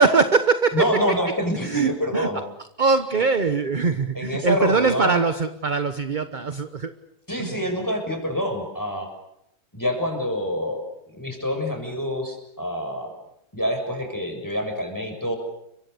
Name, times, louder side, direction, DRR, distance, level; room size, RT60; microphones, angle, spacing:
voice 1, 0.0-0.9 1.6-2.3 2.8-6.9 7.4-7.6, right 4 dB, 35° right, 10 dB, 1.1 m, -22 dB
voice 2, 0.7-2.4 3.2-3.3 4.1-5.2 7.3-9.1 9.7-10.8 11.1-13.1 13.5-15.4, equal, 10° left, 4 dB, 6.9 m, -26 dB
30.0 x 24.0 x 6.8 m, 0.77 s
omnidirectional pair, 1.7 m